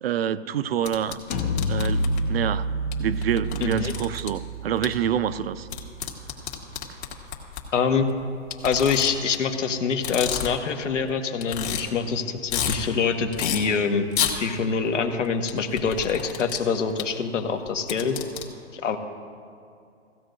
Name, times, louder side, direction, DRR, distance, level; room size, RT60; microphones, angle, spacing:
voice 1, 0.0-1.2 1.7-2.7 3.0-5.7, right 9 dB, 55° right, 14 dB, 0.5 m, -27 dB
sound 1, 0.8-2.2 2.9-3.0 3.2-4.3 4.8-4.9 5.7-7.6 8.5-9.4 9.9-10.7 11.1-11.2 11.4-11.8 12.2-12.8 13.3-13.6 14.1-14.3 15.5-16.6 17.0-17.1 17.7-18.4, left 9 dB, 60° left, 2.2 m, -29 dB
sound 2, 1.3-6.9, equal, 10° left, 0.4 m, -29 dB
voice 2, 3.6-3.9 7.7-8.1 8.6-14.1 14.4-18.1 18.7-19.0, left 5 dB, 75° left, 5 dB, 1.5 m, -25 dB
16.5 x 16.0 x 2.6 m, 2.4 s
hypercardioid pair, 150°, 37 cm